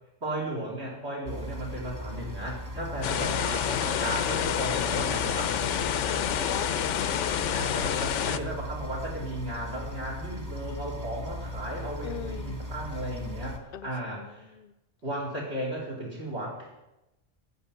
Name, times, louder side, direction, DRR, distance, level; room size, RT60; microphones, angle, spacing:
voice 1, 0.2-5.5 7.5-14.5 15.0-16.8, right 1 dB, 65° right, -2 dB, 4.4 m, -35 dB
sound 1, 1.3-13.6, left 1 dB, 15° right, 1.3 m, -38 dB
sound 2, 3.0-8.4, left 9 dB, 85° left, 1.0 m, -28 dB
voice 2, 5.9-7.7 12.0-12.6 13.7-13.9 14.6-14.7, left 9 dB, 60° left, 15 dB, 0.7 m, -40 dB
13.0 x 5.8 x 9.5 m, 0.96 s
omnidirectional pair, 1.2 m